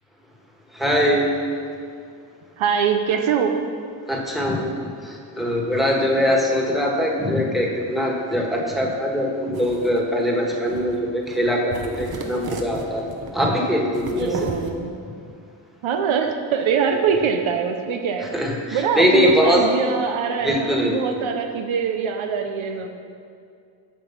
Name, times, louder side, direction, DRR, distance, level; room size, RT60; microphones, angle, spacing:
voice 1, 0.7-1.3 4.1-4.8 5.0-13.0 13.3-14.5 18.3-19.7 20.4-21.1, equal, ahead, -1 dB, 1.5 m, -22 dB
voice 2, 2.6-3.6 6.0-6.2 14.1-14.9 15.8-18.3 18.7-22.9, right 6 dB, 85° right, 5 dB, 0.7 m, -23 dB
sound 1, 9.5-10.0 10.7-11.1 11.3-11.5 11.7-13.3 13.9-14.7, right 3 dB, 50° right, 1.0 m, -34 dB
7.6 x 5.2 x 5.8 m, 2.3 s
cardioid pair, 65°, 46 cm